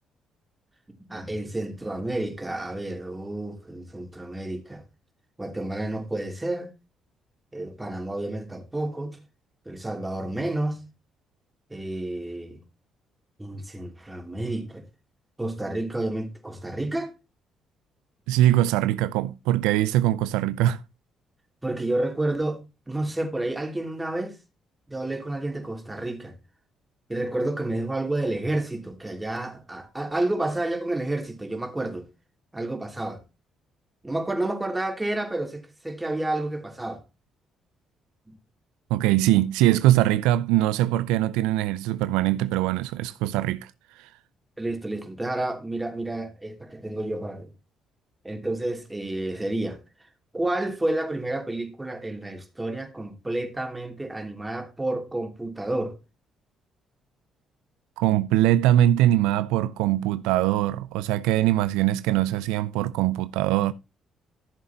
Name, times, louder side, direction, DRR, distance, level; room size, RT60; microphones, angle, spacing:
voice 1, 1.1-4.8 5.4-6.7 7.5-9.2 9.6-10.8 11.7-12.6 13.4-14.9 15.4-17.1 21.6-22.6 22.9-24.4 24.9-26.4 27.1-32.1 32.5-33.2 34.0-37.0 38.3-38.4 44.6-47.5 48.2-49.8 50.3-56.0, right 1 dB, 15° right, 3.0 m, -30 dB
voice 2, 18.3-20.8 38.9-43.7 44.0-44.1 58.0-63.7, right 14 dB, 85° right, 0.4 m, -22 dB
14.0 x 7.1 x 2.9 m
supercardioid pair, 55°, 0 cm